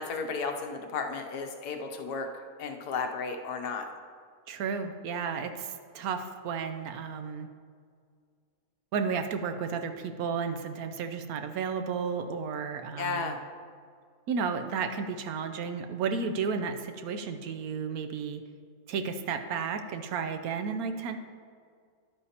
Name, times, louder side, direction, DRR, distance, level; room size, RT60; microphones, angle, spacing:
voice 1, 0.0-2.3 2.6-3.9 13.0-13.4, left 4 dB, 80° left, 4 dB, 1.4 m, -33 dB
voice 2, 4.5-7.5 8.9-13.3 14.3-18.4 18.9-21.2, right 6 dB, 70° right, 7 dB, 1.0 m, -33 dB
11.0 x 9.0 x 2.9 m, 2.1 s
omnidirectional pair, 1.7 m